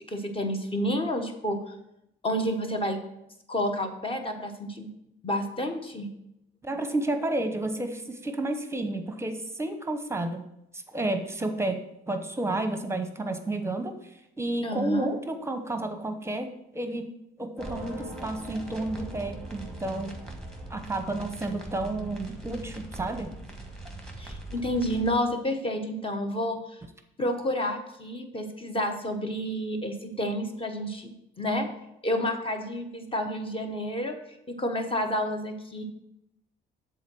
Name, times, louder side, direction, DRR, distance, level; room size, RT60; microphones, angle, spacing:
voice 1, 0.1-1.7 2.2-3.0 3.5-4.9 5.2-6.1 14.6-15.1 24.2-26.8 27.2-31.7 32.0-34.2 34.5-35.8, equal, 25° left, 5 dB, 1.2 m, -30 dB
voice 2, 6.6-10.4 10.7-11.8 12.1-17.1 17.4-20.2 20.7-23.3, right 2 dB, 15° right, 7 dB, 0.9 m, -31 dB
sound 1, 17.6-25.1, right 2 dB, 5° left, 1.4 m, -41 dB
7.2 x 4.0 x 6.2 m, 0.84 s
cardioid pair, 90°, 20 cm